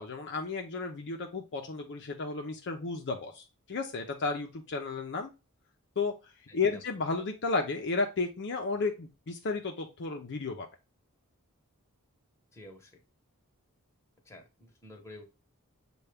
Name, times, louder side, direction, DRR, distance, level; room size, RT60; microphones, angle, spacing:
voice 1, 0.0-5.3 6.0-6.1 6.5-10.7, left 4 dB, 55° left, 3 dB, 0.6 m, -33 dB
voice 2, 6.5-6.8 12.5-12.9 14.2-15.2, left 1 dB, 15° left, 0 dB, 1.1 m, -50 dB
6.8 x 2.3 x 3.3 m, 0.28 s
head